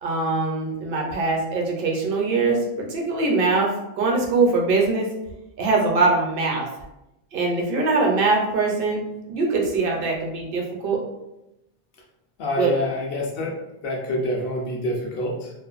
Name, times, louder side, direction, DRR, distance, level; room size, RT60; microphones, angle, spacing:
voice 1, 0.0-5.1 5.6-6.7 7.3-11.0 12.6-12.7, right 3 dB, 65° right, 0 dB, 0.7 m, -22 dB
voice 2, 12.4-13.5 13.8-15.5, left 1 dB, 65° left, -1 dB, 0.8 m, -26 dB
2.5 x 2.3 x 2.3 m, 0.90 s
omnidirectional pair, 1.1 m